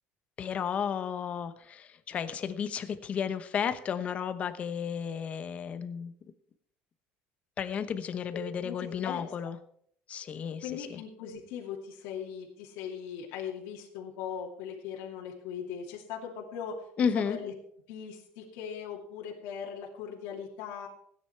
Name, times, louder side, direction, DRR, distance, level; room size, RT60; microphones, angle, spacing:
voice 1, 0.4-6.1 7.6-9.6 10.1-11.0 17.0-17.4, left 7 dB, 30° left, 12 dB, 1.0 m, -33 dB
voice 2, 8.6-9.3 10.6-16.8 17.1-17.5 17.9-20.9, left 8 dB, 75° left, -2 dB, 2.6 m, -39 dB
16.5 x 9.7 x 4.6 m, 0.65 s
cardioid pair, 165°, 4 cm